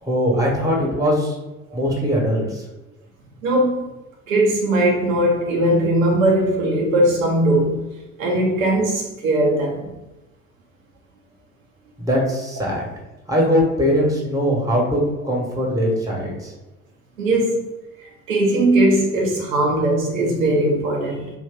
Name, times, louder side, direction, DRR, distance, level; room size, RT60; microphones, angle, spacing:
voice 1, 0.0-1.3 1.7-2.6 12.0-12.9 13.3-16.5, equal, 10° right, 1.2 m, -21 dB
voice 2, 3.4-3.8 4.3-7.8 8.2-9.9 17.2-17.6 18.0-21.3, right 1 dB, 75° right, 0.8 m, -19 dB
2.7 x 2.5 x 3.8 m
figure-of-eight pair, 60°, 40 cm